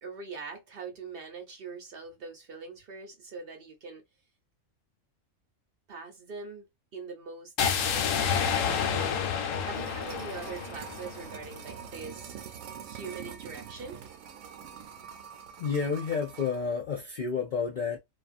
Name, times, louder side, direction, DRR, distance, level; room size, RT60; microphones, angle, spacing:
voice 1, 0.0-4.0 5.9-6.6 6.9-9.2 9.6-12.3 12.8-14.0, right 4 dB, 55° right, 0.7 m, -42 dB
sound 1, 7.6-11.6, left 7 dB, 80° left, 1.0 m, -29 dB
sound 2, 9.4-16.6 16.9-17.0, right 8 dB, 80° right, 1.0 m, -45 dB
voice 2, 15.6-18.0, left 5 dB, 60° left, 0.5 m, -30 dB
2.5 x 2.3 x 2.4 m
omnidirectional pair, 1.4 m